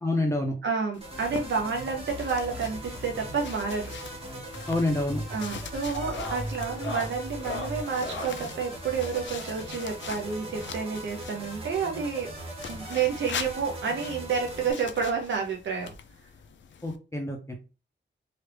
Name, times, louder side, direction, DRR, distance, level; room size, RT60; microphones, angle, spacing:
voice 1, 0.0-0.5 4.7-5.2 16.8-17.5, left 2 dB, 15° left, 1 dB, 0.5 m, -27 dB
voice 2, 0.6-3.9 5.3-12.3 12.7-15.9, right 5 dB, 65° right, 1 dB, 0.6 m, -30 dB
sound 1, 0.9-11.6 12.5-17.0, left 7 dB, 70° left, 0.4 m, -43 dB
sound 2, 1.0-14.7, right 1 dB, 30° right, 1.0 m, -39 dB
sound 3, 4.4-4.7 5.0-5.4 5.9-8.4 9.8-11.1 12.2-12.3 12.5-12.6 13.1-13.2 14.5-14.6 15.9-16.0, left 1 dB, 85° left, 0.9 m, -40 dB
3.2 x 2.4 x 3.2 m, 0.32 s
wide cardioid pair, 130°, 20 cm